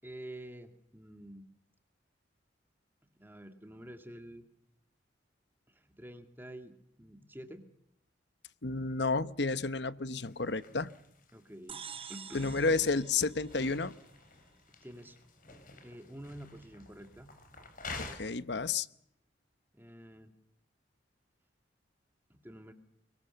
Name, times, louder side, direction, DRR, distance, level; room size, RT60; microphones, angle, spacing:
voice 1, 0.0-1.5 3.2-4.5 5.7-7.6 11.3-11.8 12.1-12.6 14.7-15.2 15.8-17.3 19.7-20.3 22.3-22.7, right 1 dB, 10° right, 7 dB, 2.1 m, -48 dB
voice 2, 8.6-10.9 12.3-13.9 18.0-18.9, left 4 dB, 65° left, 14 dB, 1.0 m, -31 dB
sound 1, 10.2-18.2, left 3 dB, 50° left, 5.5 m, -49 dB
sound 2, 11.7-14.3, right 7 dB, 30° right, 1.0 m, -48 dB
25.5 x 22.5 x 6.9 m, 0.75 s
head